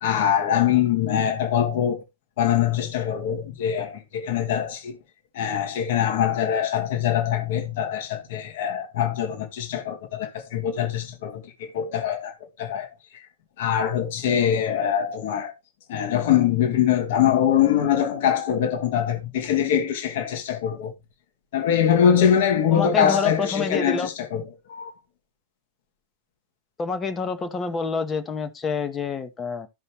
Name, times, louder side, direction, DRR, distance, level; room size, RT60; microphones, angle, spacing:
voice 1, 0.0-2.0 2.4-5.0 5.3-13.2 13.6-15.5 15.9-20.9 21.5-24.9, left 9 dB, 55° left, 1.5 m, -23 dB
voice 2, 22.7-24.1 26.8-29.7, left 5 dB, 20° left, 1.1 m, -27 dB
13.0 x 5.5 x 3.0 m
figure-of-eight pair, 90°, 0 cm